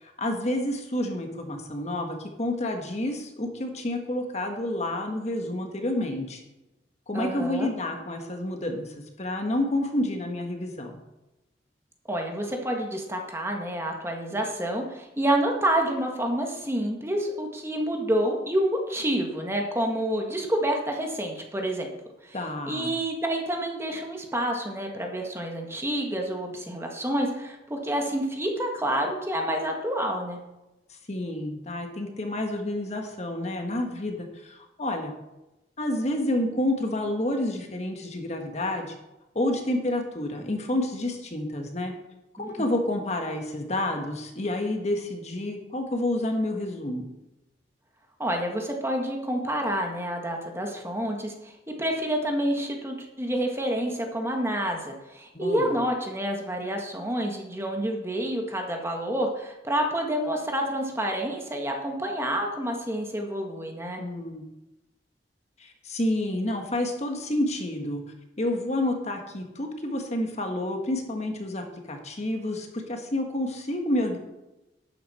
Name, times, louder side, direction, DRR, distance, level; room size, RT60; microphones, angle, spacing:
voice 1, 0.0-6.4 7.1-11.0 22.3-22.9 30.9-35.1 35.8-38.9 39.3-41.9 42.3-47.1 55.3-55.8 64.0-64.4 65.6-68.0 68.4-74.2, left 1 dB, 40° left, 4 dB, 1.5 m, -29 dB
voice 2, 7.1-7.7 12.1-21.9 22.2-22.4 22.7-30.4 48.2-64.0, right 1 dB, 15° right, 2 dB, 1.6 m, -28 dB
12.0 x 9.6 x 4.3 m, 0.96 s
head